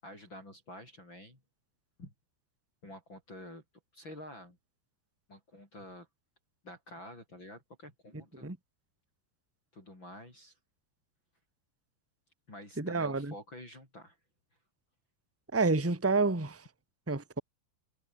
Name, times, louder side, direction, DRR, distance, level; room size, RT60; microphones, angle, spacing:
voice 1, 0.0-1.4 2.0-2.1 2.8-3.6 3.9-4.6 5.3-6.1 6.6-8.5 9.7-10.6 12.5-14.2, left 1 dB, 25° left, 7.5 m, -49 dB
voice 2, 12.8-13.3 15.5-16.6 17.1-17.4, right 3 dB, 5° right, 1.8 m, -29 dB
omnidirectional pair, 5.6 m